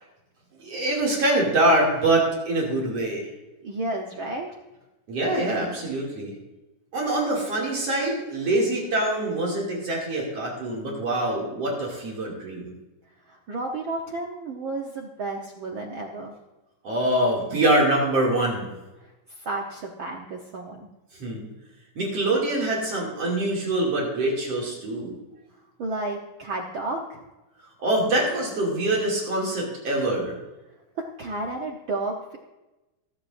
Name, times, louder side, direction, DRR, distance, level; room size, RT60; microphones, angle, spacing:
voice 1, 0.6-3.3 5.1-6.3 6.9-12.7 16.8-18.7 21.2-21.5 22.0-25.1 27.8-30.3, right 1 dB, 50° right, -3 dB, 3.4 m, -24 dB
voice 2, 3.6-4.5 13.2-16.3 19.0-20.9 25.8-27.2 31.2-32.4, right 2 dB, 80° right, 0 dB, 1.1 m, -32 dB
25.5 x 8.6 x 2.6 m, 1.0 s
omnidirectional pair, 3.7 m